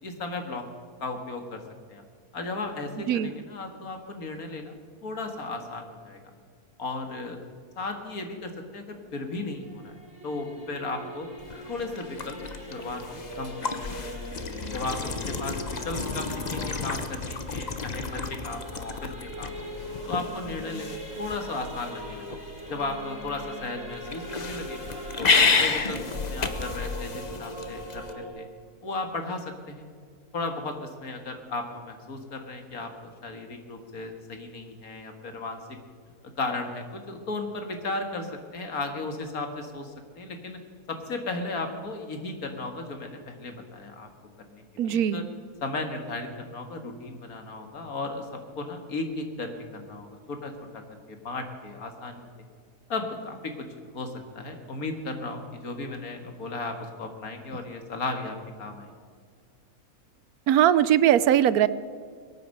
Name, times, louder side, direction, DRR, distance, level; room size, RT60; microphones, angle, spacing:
voice 1, 0.0-0.6 1.0-1.6 1.9-2.0 2.3-4.7 5.0-6.2 6.8-7.5 7.8-9.9 10.2-11.3 11.7-12.4 12.7-13.8 14.7-19.1 19.4-19.7 20.1-22.4 22.7-24.8 25.2-26.0 26.3-28.5 28.8-29.8 30.3-35.6 36.4-38.3 38.5-40.6 40.9-44.1 44.5-45.2 45.6-48.3 48.6-50.8 51.1-52.3 52.9-53.7 53.9-58.9, left 3 dB, 70° left, 5 dB, 2.2 m, -35 dB
Singing / Musical instrument, 8.9-28.3, right 1 dB, 5° right, 5.2 m, -41 dB
sound 1, 11.4-28.1, left 4 dB, 35° left, 0.9 m, -31 dB
voice 2, 44.8-45.2 60.5-61.7, right 11 dB, 75° right, 16 dB, 1.1 m, -20 dB
22.5 x 9.4 x 6.6 m, 2.1 s
omnidirectional pair, 1.6 m